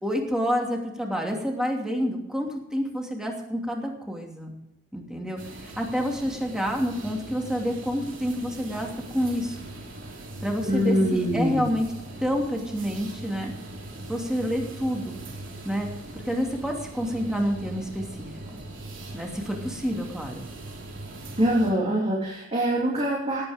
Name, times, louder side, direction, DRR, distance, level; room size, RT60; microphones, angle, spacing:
voice 1, 0.0-4.5 4.9-9.7 10.4-11.8 12.2-13.5 14.1-15.2 15.6-18.6 19.1-20.5, equal, 5° right, 1 dB, 2.7 m, -28 dB
sound 1, 5.4-21.7, right 2 dB, 70° right, 3.2 m, -40 dB
voice 2, 10.6-11.6 21.4-23.4, equal, 30° right, -4 dB, 3.2 m, -24 dB
18.5 x 8.9 x 5.2 m, 0.92 s
head